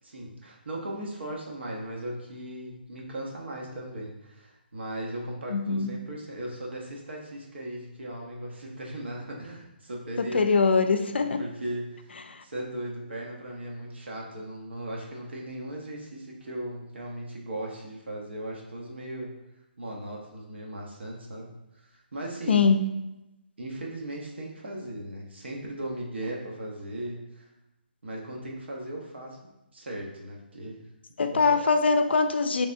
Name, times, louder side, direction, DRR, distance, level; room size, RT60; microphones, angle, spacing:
voice 1, 0.0-10.4 11.2-19.4 19.8-22.6 23.6-27.5 28.0-30.8 31.3-31.6, right 1 dB, 85° right, -2 dB, 0.9 m, -38 dB
voice 2, 5.5-5.9 10.2-11.4 22.5-22.8 31.2-32.7, left 4 dB, 85° left, 8 dB, 0.3 m, -22 dB
3.3 x 3.3 x 2.6 m, 0.94 s
hypercardioid pair, 175°, 6 cm